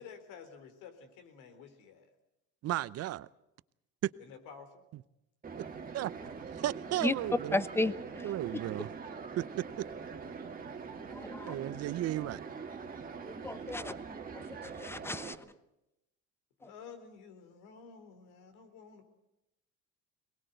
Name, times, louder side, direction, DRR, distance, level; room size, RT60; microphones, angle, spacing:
voice 1, 0.0-2.1 4.2-4.8 16.6-19.1, left 6 dB, 70° left, 3.9 m, -51 dB
voice 2, 2.6-3.3 4.0-4.1 5.9-7.6 8.2-8.9 9.4-9.8 11.5-12.5, right 14 dB, 50° right, 0.8 m, -35 dB
sound 1, 5.4-15.3, right 5 dB, 25° right, 2.6 m, -43 dB
voice 3, 7.5-8.3 11.1-11.5 13.3-13.9 14.3-15.4 16.6-16.7, left 2 dB, 5° left, 0.9 m, -34 dB
22.5 x 19.5 x 8.0 m
supercardioid pair, 100°, 33 cm